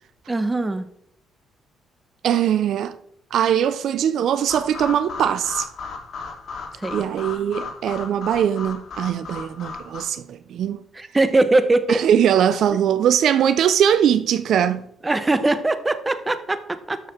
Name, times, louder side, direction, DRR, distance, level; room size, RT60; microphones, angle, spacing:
voice 1, 0.3-0.8 6.8-7.0 11.0-12.0 15.0-17.0, right 2 dB, 20° right, 1.1 m, -21 dB
voice 2, 2.2-3.0 3.3-5.7 6.9-10.8 11.9-14.8, right 9 dB, 70° right, 0.5 m, -21 dB
sound 1, 4.5-10.0, left 4 dB, 60° left, 2.8 m, -35 dB
12.5 x 6.9 x 4.4 m
cardioid pair, 90°, 0 cm